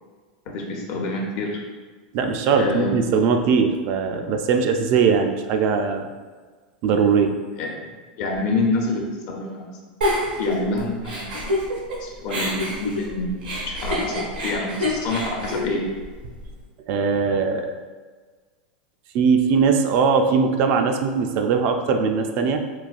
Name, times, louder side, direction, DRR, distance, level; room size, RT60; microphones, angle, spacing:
voice 1, 0.5-1.6 2.6-3.0 7.6-7.7 8.2-9.7 10.4-11.5 12.0-13.3 13.7-15.9, left 2 dB, 55° left, 0 dB, 0.7 m, -27 dB
voice 2, 2.1-6.1 6.8-7.4 16.9-17.7 19.1-22.6, right 5 dB, 55° right, 5 dB, 0.3 m, -20 dB
Giggle, 10.0-12.0 12.3-16.5, left 1 dB, 90° right, 0.9 m, -27 dB
3.9 x 2.3 x 2.4 m, 1.4 s
hypercardioid pair, 105°, 5 cm